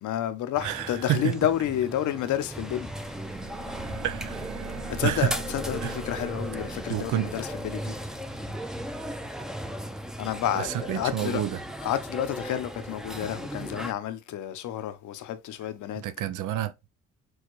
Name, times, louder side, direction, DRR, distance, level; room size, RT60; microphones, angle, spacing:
voice 1, 0.0-2.9 4.9-7.9 10.2-11.4 11.8-16.0, left 11 dB, 75° left, 0.7 m, -30 dB
sound 1, 0.6-13.9, equal, ahead, 0.5 m, -37 dB
voice 2, 0.6-1.4 4.0-4.6 5.0-5.3 5.8-6.0 6.9-7.3 10.6-11.6 15.9-16.9, right 12 dB, 85° right, 0.6 m, -29 dB
sound 2, 2.7-9.3, right 4 dB, 45° right, 1.1 m, -42 dB
6.2 x 2.3 x 3.1 m
cardioid pair, 90°, 30 cm